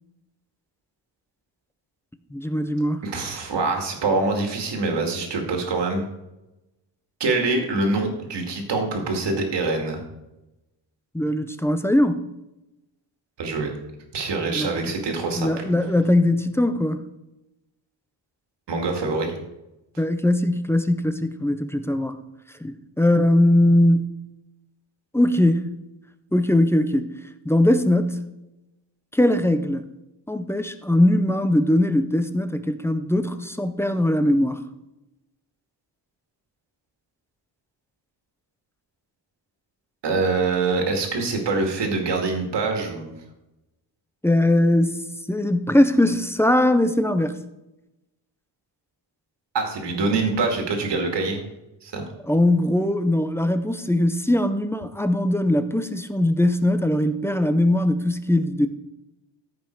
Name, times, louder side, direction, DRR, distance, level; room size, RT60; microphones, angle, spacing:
voice 1, 2.3-3.0 11.1-12.2 14.5-14.7 15.4-17.0 20.0-22.2 22.6-24.1 25.1-25.7 26.3-27.1 27.4-28.2 29.1-29.8 30.3-34.6 44.2-45.0 45.3-47.4 52.3-58.7, left 1 dB, 5° left, 0.5 m, -20 dB
voice 2, 3.0-6.1 7.2-10.0 13.4-13.7 14.1-15.6 18.7-19.4 40.0-43.1 49.5-51.4 51.8-52.0, right 3 dB, 60° right, 2.3 m, -24 dB
14.5 x 5.5 x 4.6 m
wide cardioid pair, 145°, 47 cm